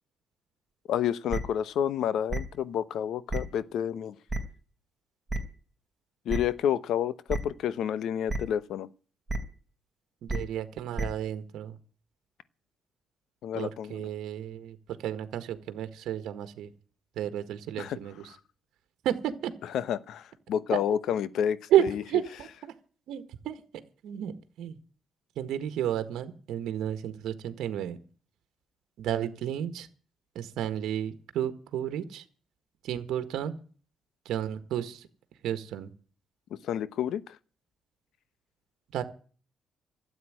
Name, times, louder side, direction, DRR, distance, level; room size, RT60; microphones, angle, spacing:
voice 1, 0.9-4.1 6.2-8.9 13.4-14.1 17.8-18.0 19.7-22.0 36.6-37.4, left 9 dB, 75° left, 0.9 m, -29 dB
sound 1, 1.3-1.4 2.3-2.4 3.3-3.4 4.3-4.4 5.3-5.4 6.3-6.4 7.3-7.4 8.3-8.4 9.3-9.4 10.3-10.4 11.0-11.1, right 2 dB, 10° right, 3.8 m, -29 dB
voice 2, 10.2-11.8 13.5-16.7 17.1-18.3 19.0-19.5 21.7-22.7 23.1-23.6 24.0-24.8 25.3-28.0 29.0-29.9 30.3-32.2 32.8-33.6 34.2-35.1 35.4-35.9 38.9-39.0, right 11 dB, 80° right, 1.6 m, -31 dB
13.0 x 8.5 x 9.9 m
cardioid pair, 90°, 0 cm